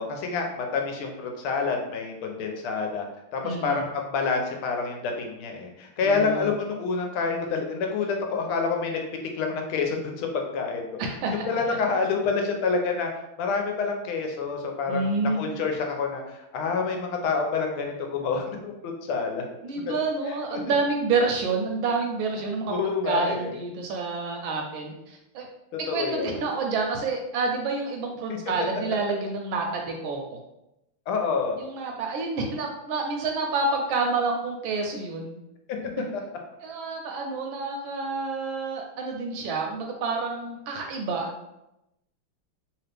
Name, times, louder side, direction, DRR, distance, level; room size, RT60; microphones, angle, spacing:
voice 1, 0.0-3.0 3.3-9.0 9.3-11.0 11.3-13.1 13.4-15.1 15.4-19.4 20.5-20.6 22.7-23.6 25.9-26.3 31.1-31.6 36.1-36.2, left 4 dB, 80° left, 3 dB, 1.4 m, -27 dB
voice 2, 3.4-3.9 6.0-6.5 11.0-11.8 14.9-15.4 19.6-25.5 25.8-30.4 31.6-35.4 36.6-41.3, right 3 dB, 75° right, 2 dB, 1.2 m, -28 dB
3.3 x 2.9 x 3.2 m, 0.89 s
omnidirectional pair, 2.4 m